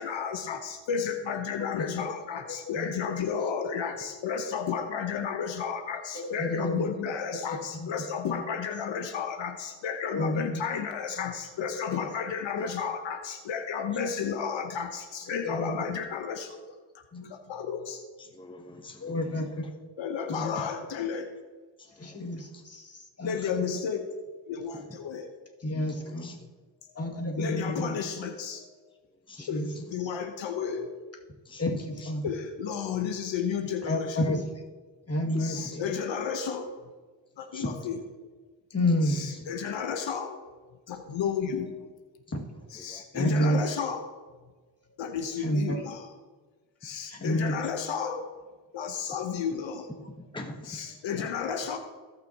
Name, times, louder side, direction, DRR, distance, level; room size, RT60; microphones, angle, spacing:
voice 1, 0.0-16.6 16.9-18.0 20.0-21.3 23.2-24.1 24.5-25.3 27.4-28.6 29.5-30.9 32.2-34.2 35.3-36.7 37.4-38.0 39.0-40.4 40.9-41.8 42.7-44.1 45.0-46.1 46.8-48.2 48.7-49.9 50.7-51.8, left 7 dB, 75° left, 5 dB, 1.0 m, -32 dB
voice 2, 6.1-6.9 7.5-7.9 8.3-8.4 10.1-10.4 15.4-15.8 17.1-17.3 19.0-19.6 20.3-20.6 22.0-23.3 23.7-23.8 25.6-26.3 27.0-27.9 29.4-29.7 31.6-32.2 33.9-34.4 35.1-35.8 38.7-39.3 43.1-43.6 45.4-45.8 47.1-47.5, left 1 dB, 30° left, 0 dB, 2.2 m, -29 dB
voice 3, 18.2-19.5 21.8-22.6 23.2-23.4 25.9-26.4 29.3-29.5 31.4-31.6 32.0-32.1 35.5-35.8 37.4-37.9 42.7-43.0 43.4-43.6 47.1-47.4 50.2-51.5, left 2 dB, 10° left, 3 dB, 1.1 m, -46 dB
17.5 x 6.0 x 2.9 m, 1.4 s
cardioid pair, 60°, 46 cm